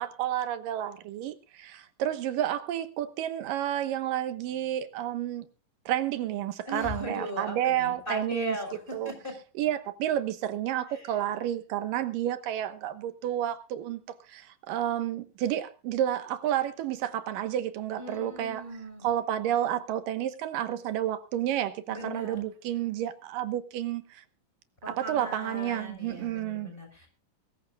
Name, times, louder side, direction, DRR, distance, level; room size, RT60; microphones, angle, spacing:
voice 1, 0.0-5.5 5.9-8.6 8.9-9.1 9.6-18.6 19.0-24.2 24.9-26.7, right 11 dB, 90° right, 2.8 m, -30 dB
voice 2, 6.7-9.3 10.9-11.2 18.0-19.1 21.9-22.4 24.8-27.1, equal, 15° left, 5.5 m, -38 dB
22.0 x 14.5 x 2.3 m
omnidirectional pair, 3.8 m